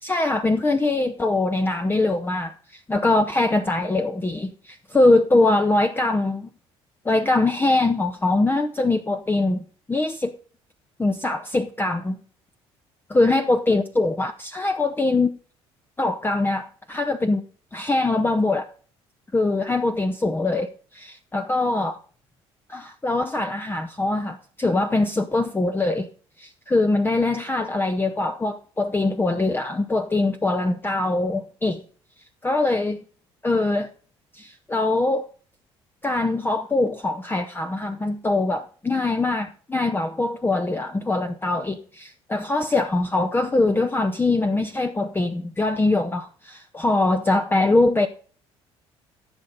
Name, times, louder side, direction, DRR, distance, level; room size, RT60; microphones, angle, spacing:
voice 1, 0.0-6.5 7.0-9.6 9.9-10.3 11.0-12.2 13.1-15.3 16.0-17.4 17.7-18.7 19.3-22.0 22.7-26.1 26.4-31.8 32.4-33.0 33.4-33.9 34.3-35.3 36.0-48.1, left 2 dB, 15° left, 0.7 m, -22 dB
15.0 x 6.4 x 4.0 m
hypercardioid pair, 60°, 13 cm